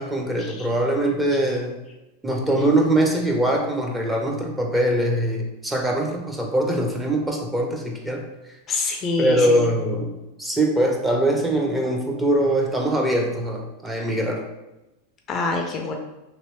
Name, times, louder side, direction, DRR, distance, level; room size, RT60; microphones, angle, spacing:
voice 1, 0.0-1.8 2.2-8.2 9.2-10.1 10.4-14.4, right 1 dB, 10° right, 0 dB, 0.7 m, -22 dB
voice 2, 8.7-9.6 15.3-15.9, left 3 dB, 35° left, 3 dB, 0.5 m, -25 dB
3.0 x 2.7 x 3.1 m, 0.97 s
hypercardioid pair, 105°, 0 cm